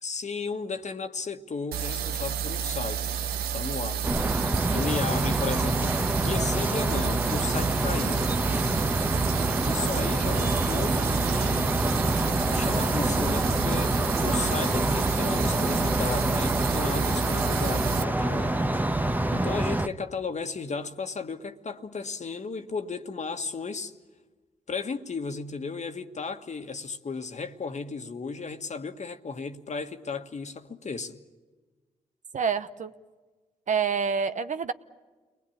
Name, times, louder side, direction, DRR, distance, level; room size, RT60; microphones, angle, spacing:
voice 1, 0.0-3.1 3.5-4.1 4.7-8.3 9.6-11.6 12.5-18.7 19.3-23.9 24.7-31.2, left 4 dB, 50° left, 1.6 m, -34 dB
sound 1, 1.7-18.0, right 9 dB, 80° right, 0.8 m, -31 dB
sound 2, 4.0-19.9, right 1 dB, 10° right, 1.2 m, -26 dB
voice 2, 9.2-9.5 16.8-17.1 32.3-32.9 33.7-34.7, right 6 dB, 55° right, 1.0 m, -28 dB
29.5 x 20.0 x 8.7 m
hypercardioid pair, 40°, 16 cm